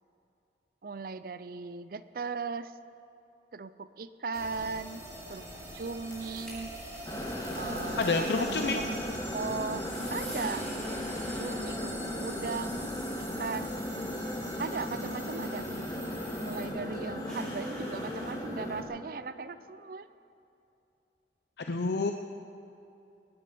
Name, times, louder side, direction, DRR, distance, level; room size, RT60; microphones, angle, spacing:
voice 1, 0.8-2.8 3.5-5.0 5.3-5.4 5.7-6.7 7.5-9.0 9.3-10.7 11.0-12.9 13.2-13.7 14.6-15.6 16.4-20.1, right 4 dB, 55° right, 14 dB, 0.5 m, -38 dB
sound 1, 4.3-16.7, right 1 dB, 20° right, 2.9 m, -44 dB
sound 2, 5.3-18.3, equal, 5° left, 3.8 m, -50 dB
sound 3, 7.0-18.8, left 1 dB, 20° left, 1.8 m, -36 dB
voice 2, 8.0-8.8 21.6-22.1, left 3 dB, 70° left, 5 dB, 0.6 m, -28 dB
20.0 x 9.9 x 6.9 m, 2.8 s
head